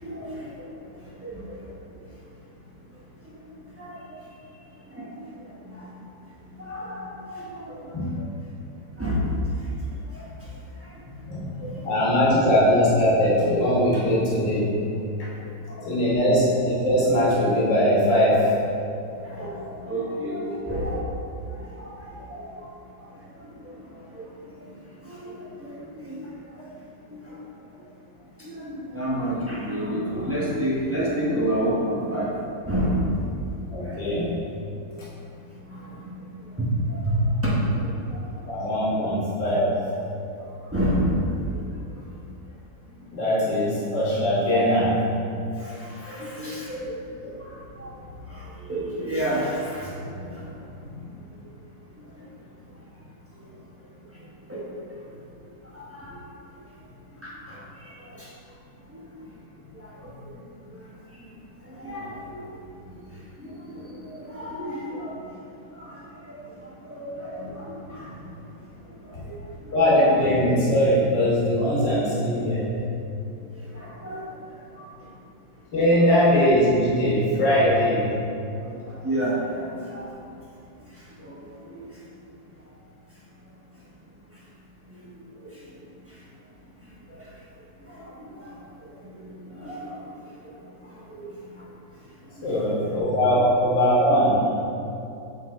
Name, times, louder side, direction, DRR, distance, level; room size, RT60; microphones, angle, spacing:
voice 1, 0.0-0.5 1.2-1.5 3.8-4.2 4.9-5.1 5.6-5.7 6.6-7.9 8.2-8.3 9.0-9.3 11.6-11.8 12.0-12.4 15.7-15.8 19.2-21.0 21.5-22.5 25.0-25.7 25.9-26.2 27.1-27.2 28.4-32.3 32.7-33.0 33.8-34.0 35.7-35.9 36.6-38.2 40.7-41.2 45.6-46.9 47.2-47.5 47.8-47.9 48.3-50.4 54.5-54.6 55.7-56.2 57.2-57.6 58.0-58.3 59.8-60.1 61.8-62.4 63.4-65.2 65.8-66.0 66.3-66.4 66.8-67.6 67.9-68.1 69.2-69.3 69.6-69.7 73.7-74.2 74.8-74.9 79.0-80.1 81.2-81.4 81.7-81.8 85.4-85.5 87.1-87.2 87.9-88.5 89.2-89.9 91.1-91.3 92.5-92.9 93.4-93.5, equal, 15° right, -8 dB, 0.4 m, -30 dB
voice 2, 11.8-14.7 15.9-18.5 33.7-34.3 38.5-39.8 43.1-45.0 69.1-69.2 69.7-72.7 75.7-78.1 92.4-94.4, equal, 65° left, -7 dB, 2.1 m, -21 dB
6.9 x 3.8 x 3.5 m, 2.7 s
omnidirectional pair, 2.1 m